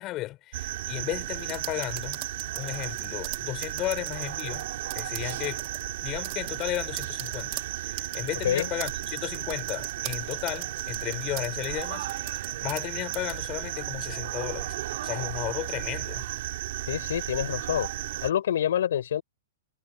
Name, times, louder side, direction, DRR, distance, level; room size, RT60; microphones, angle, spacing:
voice 1, 0.0-2.2 2.6-4.7 4.9-5.6 6.0-14.7 15.0-16.2, left 17 dB, 30° left, 5.4 m, -34 dB
sound 1, 0.5-18.3, right 15 dB, 55° right, 4.2 m, -34 dB
sound 2, 1.4-4.6 4.9-5.8 6.2-12.9 13.1-13.4, right 24 dB, 40° right, 1.9 m, -40 dB
voice 2, 16.9-17.9 18.2-19.2, left 10 dB, 75° left, 4.8 m, -26 dB
hypercardioid pair, 155°, 0 cm